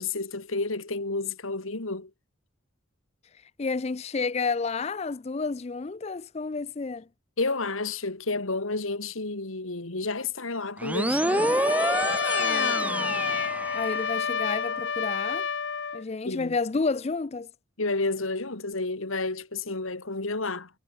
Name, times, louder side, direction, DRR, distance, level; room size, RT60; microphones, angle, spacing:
voice 1, 0.0-2.1 7.4-11.6 16.2-16.6 17.8-20.7, left 3 dB, 85° left, 2.4 m, -31 dB
voice 2, 3.6-7.1 12.4-13.1 13.7-15.5 15.9-17.5, left 4 dB, 30° left, 0.4 m, -30 dB
sound 1, 10.8-14.3, right 1 dB, 5° right, 0.7 m, -28 dB
Trumpet, 11.2-16.0, left 6 dB, 60° left, 0.8 m, -29 dB
head